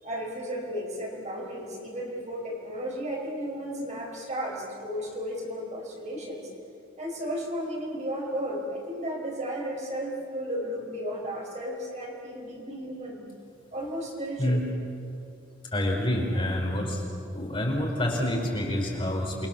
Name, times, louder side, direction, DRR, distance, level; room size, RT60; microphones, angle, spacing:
voice 1, 0.0-6.5 7.0-13.2 13.7-14.6, equal, 35° right, -1 dB, 5.2 m, -34 dB
voice 2, 15.7-17.0 17.3-19.5, left 1 dB, 25° left, -1 dB, 4.5 m, -27 dB
29.0 x 23.0 x 7.1 m, 2.6 s
head